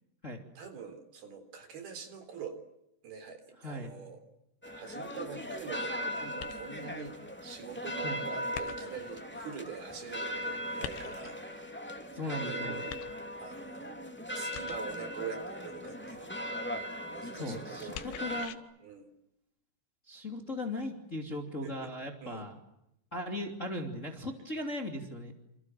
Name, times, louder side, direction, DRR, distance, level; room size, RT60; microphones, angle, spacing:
voice 1, 0.6-2.6 3.0-4.2 4.7-7.2 7.4-11.8 12.3-12.9 13.4-14.0 14.3-16.5 17.1-18.4 18.8-19.1 21.6-21.9 22.2-22.5, right 6 dB, 65° right, 8 dB, 5.4 m, -44 dB
voice 2, 3.6-3.9 8.0-8.2 12.1-12.8 17.3-18.6 20.1-22.6 23.1-25.3, left 1 dB, 20° left, 4 dB, 2.7 m, -38 dB
sound 1, 4.6-18.5, equal, 5° left, 1.6 m, -39 dB
sound 2, 6.4-6.9 8.5-9.1 10.8-11.5 12.9-13.5 14.5-15.1 17.9-18.6, left 11 dB, 90° left, 3.4 m, -44 dB
27.5 x 27.5 x 7.7 m, 0.82 s
omnidirectional pair, 4.9 m